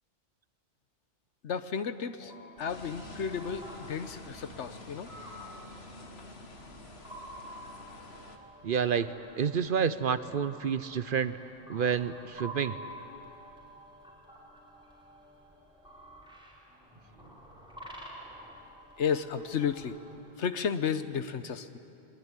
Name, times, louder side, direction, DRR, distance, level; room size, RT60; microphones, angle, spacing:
voice 1, 1.4-2.3 2.6-5.1 19.0-20.0 20.4-21.8, left 7 dB, 80° left, 11 dB, 1.3 m, -32 dB
sound 1, 2.2-20.2, equal, 5° right, 5.1 m, -50 dB
sound 2, 2.7-8.4, left 2 dB, 65° left, 2.0 m, -48 dB
voice 2, 8.6-11.4 11.7-12.8, right 7 dB, 55° right, 13 dB, 0.8 m, -29 dB
23.0 x 21.0 x 9.9 m, 2.7 s
omnidirectional pair, 1.2 m